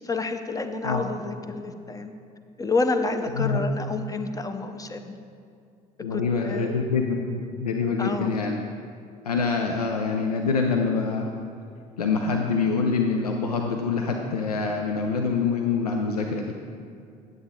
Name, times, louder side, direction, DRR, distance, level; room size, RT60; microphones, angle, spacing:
voice 1, 0.0-2.1 2.6-5.2 6.1-6.8 8.0-8.4, left 3 dB, 20° left, 7 dB, 0.7 m, -29 dB
voice 2, 6.0-8.6 9.3-11.3 12.0-16.5, left 4 dB, 90° left, 3 dB, 0.4 m, -25 dB
9.3 x 7.6 x 3.6 m, 2.4 s
figure-of-eight pair, 50°, 19 cm